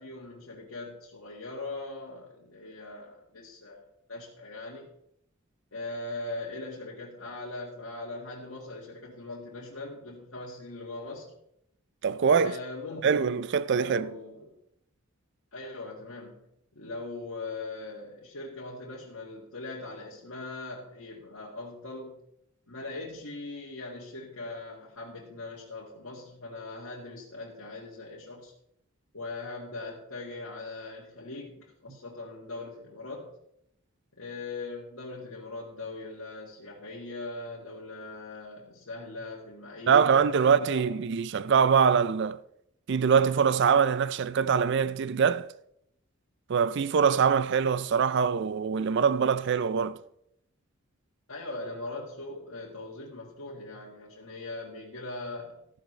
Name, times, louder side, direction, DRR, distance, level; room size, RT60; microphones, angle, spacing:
voice 1, 0.0-3.8 4.1-4.9 5.7-11.3 12.4-13.4 13.8-14.6 15.5-16.5 16.7-22.2 22.7-28.5 29.1-33.3 34.1-41.0 51.3-55.6, left 2 dB, 80° left, 1.8 m, -40 dB
voice 2, 12.0-12.6 13.0-14.1 39.9-42.4 42.9-45.5 46.5-50.0, right 6 dB, 55° right, 0.4 m, -23 dB
14.0 x 10.5 x 3.3 m
head